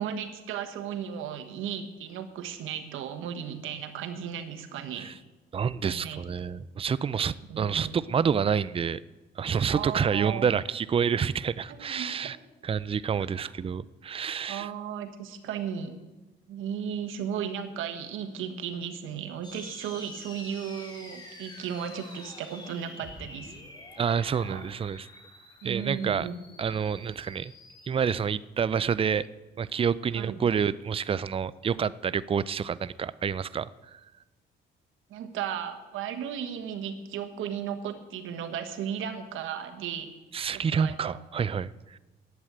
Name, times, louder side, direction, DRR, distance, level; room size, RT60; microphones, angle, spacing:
voice 1, 0.0-5.1 5.8-6.2 7.5-7.9 9.7-10.5 11.7-12.3 14.5-15.9 16.5-23.5 24.4-24.6 25.6-26.4 30.1-30.4 35.1-40.1 40.5-41.1, right 8 dB, 85° right, 8 dB, 1.4 m, -35 dB
voice 2, 5.5-9.0 9.4-12.4 12.6-14.7 24.0-25.1 25.6-26.3 26.6-27.5 27.9-29.3 29.6-33.7 40.3-42.0, right 7 dB, 30° right, 17 dB, 0.4 m, -28 dB
sound 1, 19.4-27.9, left 2 dB, 20° left, 2.7 m, -47 dB
11.0 x 8.2 x 8.8 m, 1.1 s
cardioid pair, 90°, 20 cm